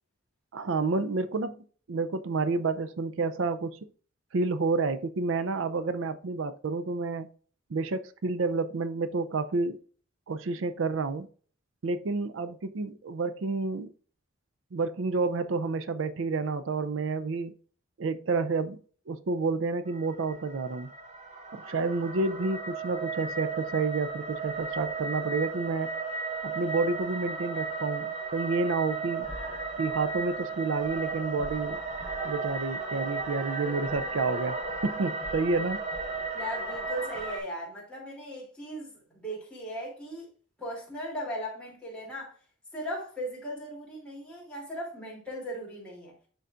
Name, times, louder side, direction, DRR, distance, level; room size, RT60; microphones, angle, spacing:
voice 1, 0.5-3.8 4.3-7.3 7.7-9.8 10.3-11.3 11.8-13.9 14.7-17.5 18.0-18.8 19.1-20.9 21.5-25.9 26.4-29.3 29.8-31.8 32.2-35.8, right 3 dB, 85° right, 0.5 m, -29 dB
sound 1, 19.9-37.4, right 4 dB, 35° right, 1.0 m, -35 dB
voice 2, 36.3-40.3 40.6-42.4 42.7-46.1, equal, 5° left, 2.8 m, -38 dB
11.0 x 3.9 x 2.4 m
head